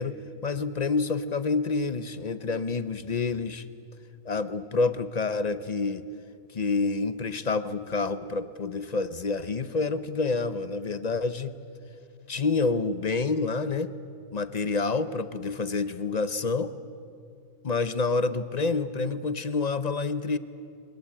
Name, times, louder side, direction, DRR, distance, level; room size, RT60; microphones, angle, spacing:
voice 1, 0.0-3.6 4.3-6.0 6.5-11.5 12.3-13.9 14.3-16.7 17.6-20.4, left 4 dB, 40° left, 13 dB, 0.6 m, -28 dB
23.0 x 21.0 x 8.7 m, 2.4 s
omnidirectional pair, 1.5 m